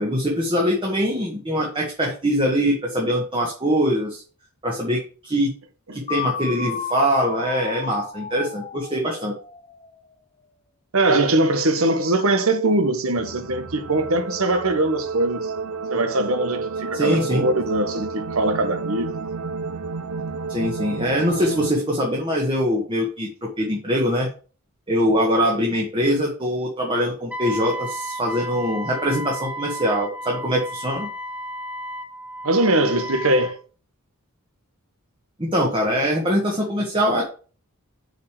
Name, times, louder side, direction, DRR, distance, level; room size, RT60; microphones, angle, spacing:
voice 1, 0.0-4.2 4.6-5.5 5.9-9.3 16.9-17.4 20.5-24.3 24.9-31.1 35.4-37.2, equal, 25° right, 1.6 m, -23 dB
sound 1, 6.1-9.9, left 7 dB, 30° left, 0.7 m, -32 dB
voice 2, 10.9-15.5 15.9-19.2 32.4-33.6, right 2 dB, 65° right, 1.3 m, -21 dB
sound 2, 13.2-21.7, right 4 dB, 85° right, 0.8 m, -31 dB
Wind instrument woodwind instrument, 27.3-33.5, equal, 5° right, 0.7 m, -33 dB
6.6 x 5.2 x 6.6 m
head